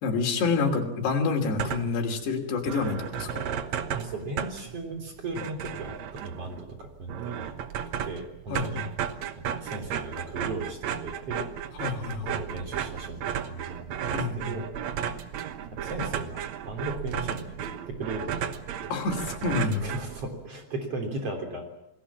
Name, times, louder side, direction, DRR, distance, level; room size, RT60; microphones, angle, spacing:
voice 1, 0.0-3.4 8.5-8.8 11.7-12.4 14.1-14.6 18.9-19.9, left 4 dB, 75° left, 3 dB, 5.0 m, -28 dB
sound 1, 1.4-2.1 2.4-2.5 2.7-20.5, right 8 dB, 70° right, 1.7 m, -34 dB
voice 2, 3.9-7.5 8.0-8.9 9.4-11.5 12.2-14.6 15.7-18.9 19.8-21.7, right 2 dB, 40° right, 5 dB, 4.1 m, -37 dB
28.0 x 19.5 x 7.2 m, 0.82 s
omnidirectional pair, 4.8 m